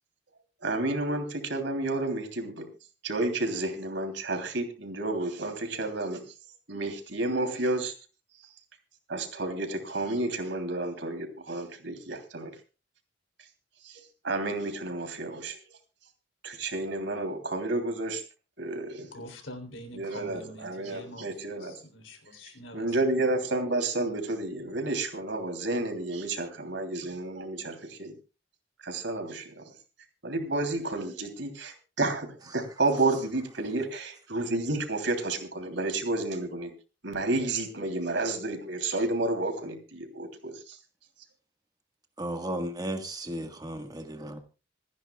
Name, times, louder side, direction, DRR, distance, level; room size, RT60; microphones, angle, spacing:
voice 1, 0.6-2.6 3.0-6.2 6.7-7.9 9.1-12.5 13.8-15.6 16.4-18.2 18.6-19.1 19.9-21.8 22.7-28.1 28.8-29.6 30.2-32.3 32.5-36.7 37.0-40.8, right 2 dB, 70° right, 5 dB, 3.2 m, -31 dB
voice 2, 19.0-23.0 23.3-23.4, equal, 85° left, 6 dB, 3.4 m, -45 dB
voice 3, 42.2-44.4, right 1 dB, 20° right, 6 dB, 1.6 m, -34 dB
26.5 x 10.5 x 2.3 m, 0.32 s
head